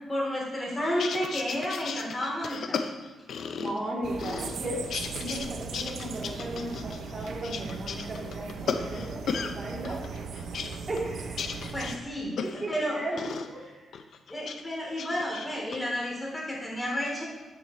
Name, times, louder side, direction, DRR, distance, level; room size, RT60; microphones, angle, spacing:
voice 1, 0.1-2.8 11.7-12.3 12.7-13.2 14.3-17.2, equal, 20° left, -3 dB, 3.5 m, -31 dB
sound 1, 0.8-3.9 4.2-5.5 5.7-9.5 9.8-12.8 13.2-13.5 13.9-14.6 14.9-15.8, left 6 dB, 70° left, 0.7 m, -35 dB
voice 2, 3.5-4.8 5.2-10.0 10.9-11.6 12.4-13.8, right 1 dB, 30° right, -4 dB, 3.2 m, -36 dB
sound 2, 4.0-12.0, right 5 dB, 75° right, 0.9 m, -38 dB
13.5 x 7.4 x 3.2 m, 1.3 s
cardioid pair, 100°, 0 cm